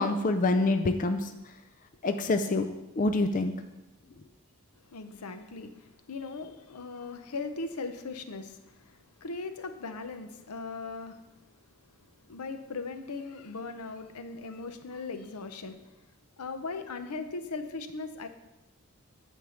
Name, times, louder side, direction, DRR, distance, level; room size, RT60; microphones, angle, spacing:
voice 1, 0.0-1.6 2.0-3.5, left 2 dB, 35° left, 8 dB, 0.4 m, -27 dB
voice 2, 4.9-11.2 12.2-15.9 16.4-18.3, left 3 dB, 85° left, 9 dB, 0.7 m, -39 dB
9.3 x 3.6 x 7.0 m, 1.0 s
head